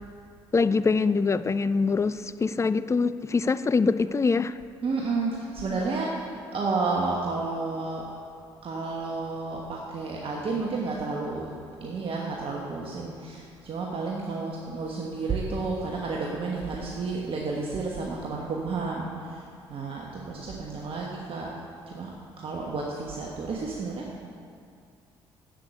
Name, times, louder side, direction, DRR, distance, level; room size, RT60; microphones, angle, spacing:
voice 1, 0.5-4.6, left 4 dB, 25° left, 14 dB, 0.4 m, -24 dB
voice 2, 4.8-6.1 6.5-8.0 8.6-11.5 11.8-19.4 19.7-21.5 21.9-22.1 22.4-24.1, right 3 dB, 50° right, -2 dB, 1.3 m, -31 dB
8.0 x 6.7 x 8.2 m, 2.4 s
hypercardioid pair, 55°, 12 cm